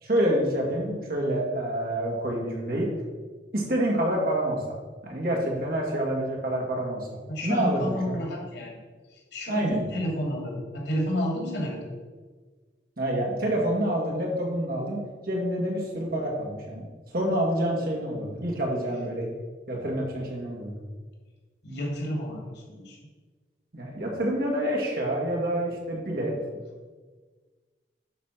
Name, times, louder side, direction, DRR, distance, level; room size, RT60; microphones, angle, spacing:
voice 1, 0.0-2.9 3.5-4.8 5.0-8.2 9.5-9.8 13.0-16.8 17.1-19.3 19.7-20.8 23.7-26.3, right 1 dB, 60° right, -1 dB, 2.2 m, -27 dB
voice 2, 7.3-8.7 9.1-11.9 21.6-23.0, equal, 85° left, -1 dB, 2.8 m, -31 dB
11.0 x 4.3 x 5.9 m, 1.4 s
head